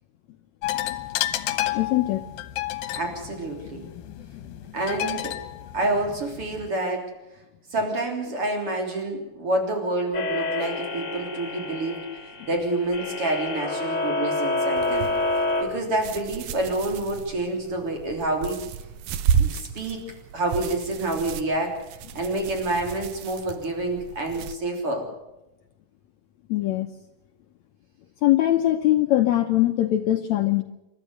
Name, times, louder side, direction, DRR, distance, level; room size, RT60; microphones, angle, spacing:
sound 1, 0.6-6.7, left 14 dB, 75° left, 2.7 m, -31 dB
voice 1, 1.7-2.3 26.5-26.9 28.2-30.6, left 14 dB, 90° left, 6 dB, 1.5 m, -21 dB
voice 2, 3.0-3.8 4.7-5.3 5.7-7.1 7.7-12.0 12.5-15.1 15.6-18.6 19.4-20.0 20.3-21.8 22.2-25.0, right 2 dB, 35° right, 2 dB, 4.1 m, -28 dB
sound 2, 10.1-15.6, left 2 dB, 30° left, 3.3 m, -28 dB
sound 3, 14.8-24.6, right 7 dB, 75° right, 1.8 m, -32 dB
28.5 x 12.5 x 8.0 m, 0.93 s
omnidirectional pair, 4.3 m